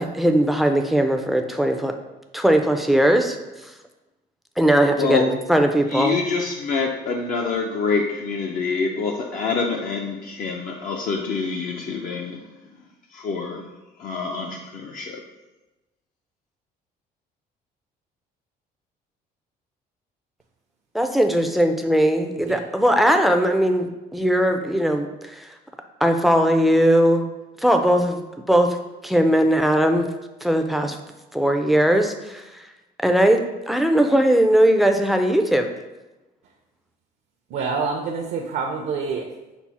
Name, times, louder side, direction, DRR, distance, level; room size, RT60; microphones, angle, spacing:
voice 1, 0.0-1.9 2.3-3.4 4.6-6.2 20.9-25.5 26.0-27.3 27.6-28.2 28.5-28.8 29.0-30.1 30.4-31.0 31.3-32.6 33.0-35.7, right 1 dB, ahead, 5 dB, 0.4 m, -19 dB
voice 2, 5.0-5.3 5.9-12.4 13.1-13.7 14.0-15.2, left 4 dB, 55° left, 1 dB, 0.5 m, -26 dB
voice 3, 37.5-39.3, right 5 dB, 75° right, 1 dB, 0.6 m, -27 dB
5.9 x 2.0 x 4.1 m, 1.1 s
cardioid pair, 110°, 17 cm